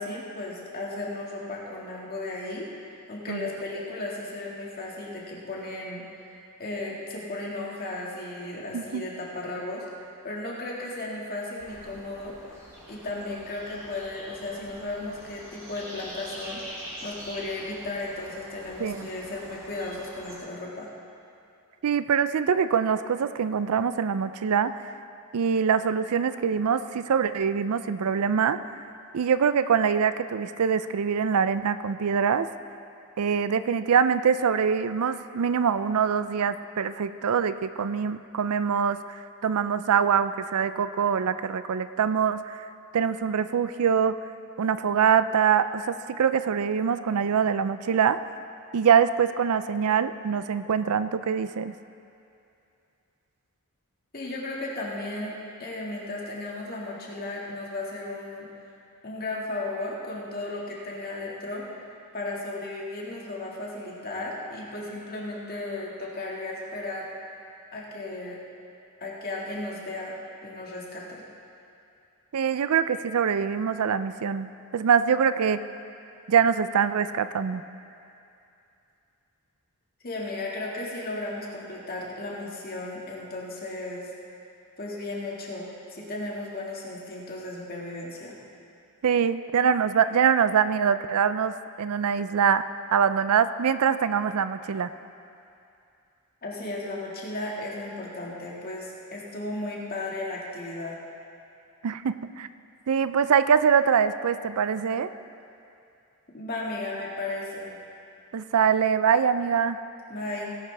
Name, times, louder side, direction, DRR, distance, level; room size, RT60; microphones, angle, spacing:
voice 1, 0.0-2.7 3.1-6.1 6.6-9.9 10.2-12.4 12.9-20.9 54.1-58.5 59.0-61.7 62.1-67.1 67.7-68.4 69.0-71.3 80.0-84.1 84.8-88.4 96.4-101.0 106.3-107.8 110.1-110.6, left 2 dB, 45° left, -4 dB, 2.0 m, -35 dB
voice 2, 8.7-9.1 18.8-19.1 21.8-24.8 25.3-28.6 29.1-32.5 33.2-42.6 42.9-44.1 44.6-48.2 48.7-51.7 72.3-75.6 76.3-77.6 89.0-92.6 92.9-94.9 101.8-102.5 102.9-105.1 108.3-109.8, right 7 dB, 85° right, 13 dB, 0.4 m, -24 dB
sound 1, 11.6-20.4, equal, 15° right, 3.5 m, -44 dB
18.0 x 11.5 x 3.4 m, 2.6 s
head